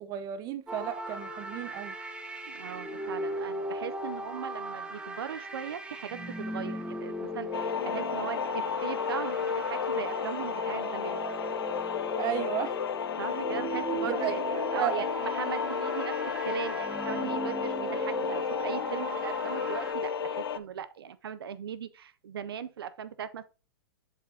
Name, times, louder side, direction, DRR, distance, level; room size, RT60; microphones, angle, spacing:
voice 1, 0.0-1.9 12.2-12.8 14.0-15.0, right 10 dB, 35° right, 0.8 m, -33 dB
sound 1, 0.7-19.9, right 1 dB, 10° right, 0.9 m, -38 dB
voice 2, 2.5-11.5 13.2-14.4 14.7-23.4, right 8 dB, 85° right, 0.4 m, -39 dB
sound 2, 7.5-20.6, left 7 dB, 85° left, 0.5 m, -32 dB
7.4 x 5.1 x 2.7 m
hypercardioid pair, 125°, 12 cm